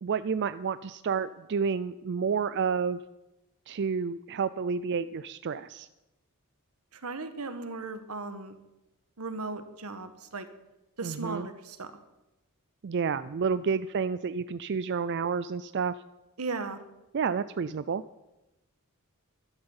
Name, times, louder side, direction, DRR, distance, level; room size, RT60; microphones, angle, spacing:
voice 1, 0.0-3.0 3.7-5.9 11.0-11.5 12.8-15.9 17.1-18.0, right 5 dB, 50° right, 13 dB, 0.4 m, -30 dB
voice 2, 6.9-8.6 9.2-10.5 11.0-11.9 16.4-16.8, right 3 dB, 85° right, 10 dB, 1.4 m, -37 dB
12.5 x 11.5 x 7.2 m, 0.98 s
head